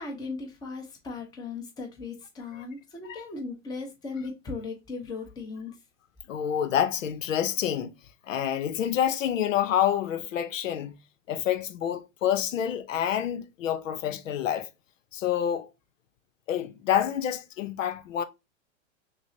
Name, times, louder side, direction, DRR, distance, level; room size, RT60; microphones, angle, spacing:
voice 1, 0.0-5.8, left 4 dB, 10° left, 0.7 m, -37 dB
voice 2, 6.3-7.9 8.3-10.9 11.3-14.7 15.1-15.7 16.5-18.2, left 10 dB, 85° left, 0.6 m, -27 dB
6.0 x 2.0 x 2.7 m
hypercardioid pair, 145°, 38 cm